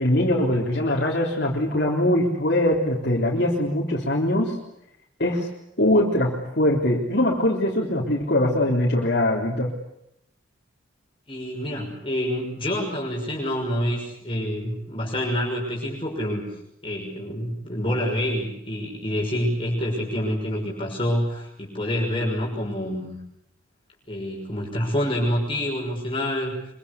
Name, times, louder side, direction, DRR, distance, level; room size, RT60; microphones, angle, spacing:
voice 1, 0.0-4.6 5.2-5.5 5.8-9.7, left 1 dB, 50° left, -2 dB, 3.7 m, -22 dB
voice 2, 11.3-16.4 16.8-23.2 24.1-26.5, equal, 25° left, -2 dB, 6.2 m, -27 dB
26.0 x 24.0 x 8.3 m, 0.78 s
head